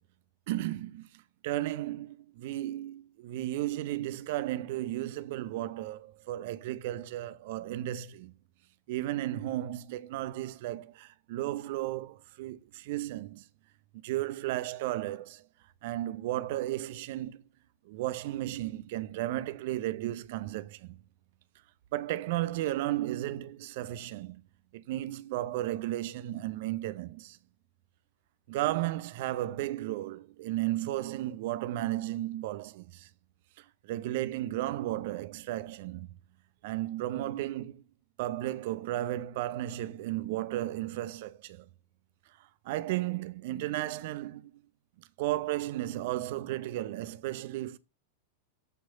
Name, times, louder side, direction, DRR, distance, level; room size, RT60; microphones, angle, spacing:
voice 1, 0.5-1.1 1.4-8.3 8.9-13.4 13.9-15.4 15.8-17.4 17.9-21.0 21.9-24.4 24.7-27.4 28.5-33.1 33.9-36.1 36.6-37.8 38.2-41.7 42.7-44.5 45.2-47.8, right 15 dB, 50° right, 0.6 m, -34 dB
13.0 x 4.8 x 4.0 m
figure-of-eight pair, 90°, 0 cm